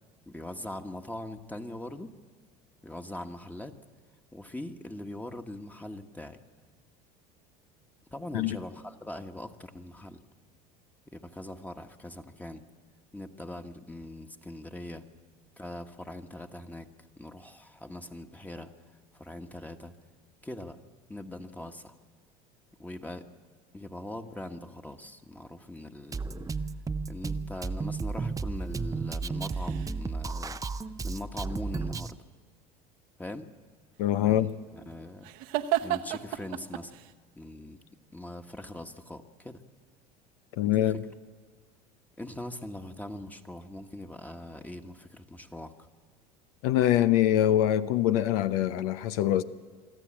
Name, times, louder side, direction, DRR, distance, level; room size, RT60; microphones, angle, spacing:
voice 1, 0.3-2.2 2.8-3.7 4.3-6.4 8.1-10.2 11.1-12.6 13.1-15.0 15.6-16.9 17.2-18.7 19.1-19.9 20.4-20.8 21.1-21.9 22.8-23.3 23.7-26.2 27.1-30.6 31.0-32.2 33.2-33.5 34.2-34.5 34.7-35.3 35.8-37.0 37.4-37.8 38.1-39.6 40.6-41.0 42.2-45.9, left 1 dB, 10° left, 1.4 m, -41 dB
Drum kit, 26.1-32.1, right 4 dB, 15° right, 0.7 m, -33 dB
sound 1, 29.2-30.2 33.9-37.1, right 13 dB, 65° right, 1.1 m, -34 dB
voice 2, 34.0-34.5 40.6-41.0 46.6-49.4, left 12 dB, 70° left, 0.8 m, -24 dB
25.0 x 13.5 x 8.8 m
hypercardioid pair, 85°, 20 cm